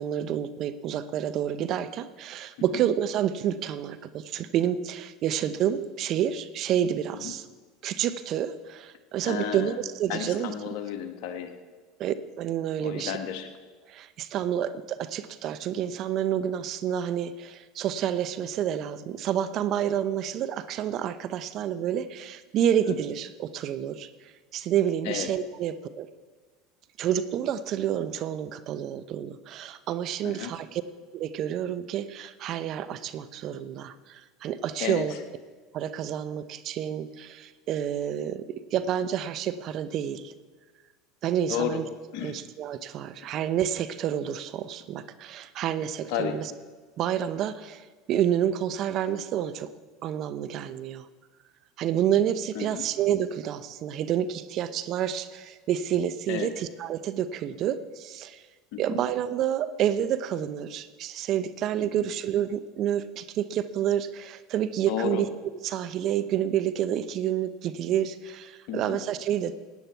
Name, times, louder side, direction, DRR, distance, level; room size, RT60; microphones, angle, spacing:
voice 1, 0.0-7.5 7.8-10.5 12.0-13.2 13.9-24.1 24.5-26.1 27.0-30.8 31.1-35.1 35.7-40.3 41.2-41.8 42.2-46.5 47.0-49.7 50.0-51.1 51.8-58.4 58.8-65.3 65.6-69.6, right 10 dB, 50° right, 13 dB, 0.8 m, -29 dB
voice 2, 9.2-9.8 10.1-11.6 12.8-13.5 22.9-23.0 25.0-25.3 30.2-30.5 34.8-35.2 41.5-41.8 42.1-42.4 46.1-46.4 52.5-52.8 56.3-56.5 58.7-59.0 61.9-62.0 64.9-65.2 68.7-69.0, left 9 dB, 65° left, 6 dB, 1.4 m, -32 dB
16.5 x 9.7 x 4.5 m, 1.4 s
hypercardioid pair, 85°, 0 cm